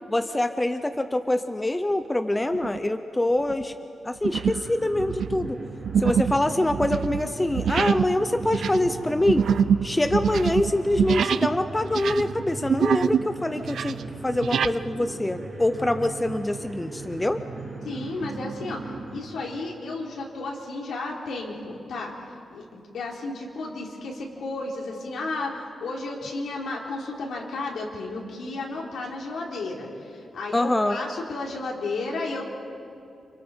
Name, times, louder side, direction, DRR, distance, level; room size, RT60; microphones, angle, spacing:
voice 1, 0.1-3.7 4.0-5.6 6.0-9.5 9.8-14.0 14.2-17.4 30.5-31.0, left 1 dB, 10° left, 8 dB, 0.6 m, -25 dB
sound 1, 2.5-2.9 3.4-3.6 4.2-4.7 5.0-11.6 11.9-13.3 13.6-14.8, right 7 dB, 70° right, 0.5 m, -25 dB
sound 2, 4.4-19.2, right 3 dB, 30° right, 6.6 m, -38 dB
voice 2, 17.8-22.1 22.5-32.5, left 2 dB, 75° left, -2 dB, 3.9 m, -33 dB
29.5 x 27.0 x 4.5 m, 2.5 s
wide cardioid pair, 165°, 0 cm